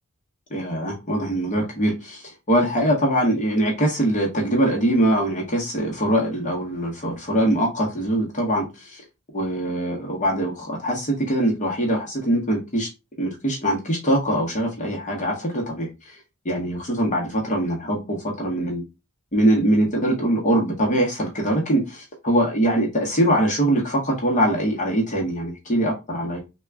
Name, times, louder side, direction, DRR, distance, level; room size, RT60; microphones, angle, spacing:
voice 1, 0.5-9.0 9.3-12.9 13.2-16.2 16.4-18.8 19.3-26.4, right 1 dB, 35° left, -1 dB, 0.8 m, -22 dB
3.4 x 2.2 x 3.3 m, 0.26 s
head